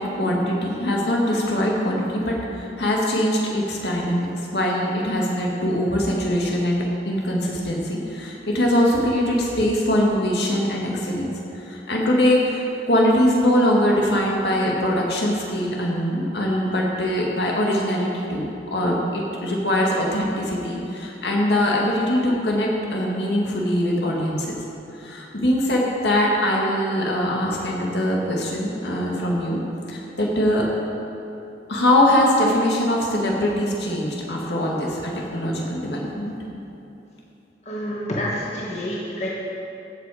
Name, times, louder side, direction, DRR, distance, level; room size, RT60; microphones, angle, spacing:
voice 1, 0.0-24.5 24.9-29.6 29.9-30.6 31.7-36.3, left 1 dB, 70° left, -2 dB, 2.0 m, -22 dB
voice 2, 37.6-39.3, equal, 40° left, -4 dB, 1.5 m, -28 dB
15.5 x 7.6 x 5.0 m, 2.9 s
head